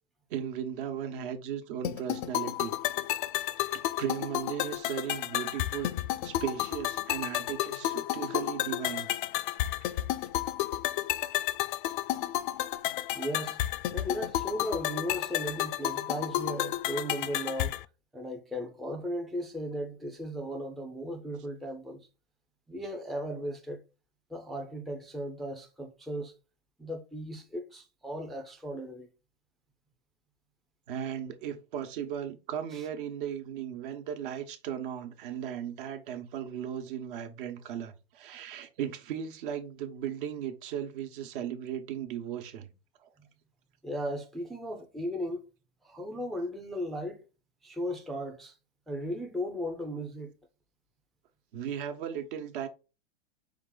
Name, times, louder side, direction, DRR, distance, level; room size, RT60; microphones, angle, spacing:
voice 1, 0.3-2.8 3.7-5.9 6.2-9.1 9.4-9.7 30.9-42.7 43.0-43.1 51.5-52.7, right 9 dB, 60° right, 1.1 m, -36 dB
sound 1, 1.8-17.8, left 14 dB, 55° left, 0.4 m, -32 dB
voice 2, 13.1-13.6 13.9-17.7 18.1-22.1 22.7-23.8 24.3-26.3 26.8-29.1 32.7-32.8 43.8-45.4 45.8-47.2 47.6-48.5 48.9-50.3, equal, ahead, 0.4 m, -36 dB
5.6 x 2.5 x 3.8 m
supercardioid pair, 135°, 30 cm